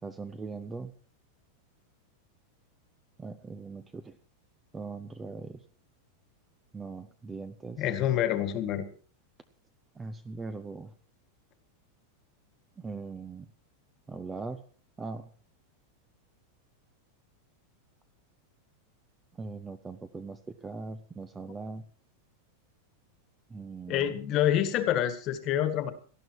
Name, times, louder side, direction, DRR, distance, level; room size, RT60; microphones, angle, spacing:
voice 1, 0.0-0.9 3.2-4.2 4.7-5.6 6.7-7.8 10.0-10.9 12.8-13.5 14.1-14.6 15.0-15.3 19.3-21.8 23.5-24.2, right 4 dB, 10° right, 11 dB, 0.6 m, -40 dB
voice 2, 7.8-8.8 23.9-25.9, left 11 dB, 30° left, 11 dB, 1.6 m, -27 dB
18.5 x 12.5 x 4.6 m, 0.42 s
supercardioid pair, 175°, 0 cm